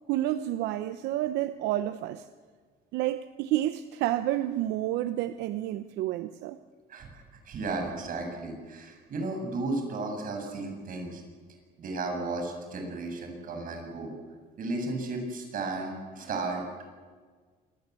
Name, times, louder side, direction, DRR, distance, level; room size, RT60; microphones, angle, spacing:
voice 1, 0.1-2.3 2.9-6.6, right 14 dB, 90° right, 11 dB, 0.9 m, -30 dB
voice 2, 6.9-11.2 11.8-14.1 14.6-16.6, right 3 dB, 55° right, 3 dB, 7.6 m, -34 dB
26.5 x 21.0 x 8.3 m, 1.6 s
cardioid pair, 110°, 17 cm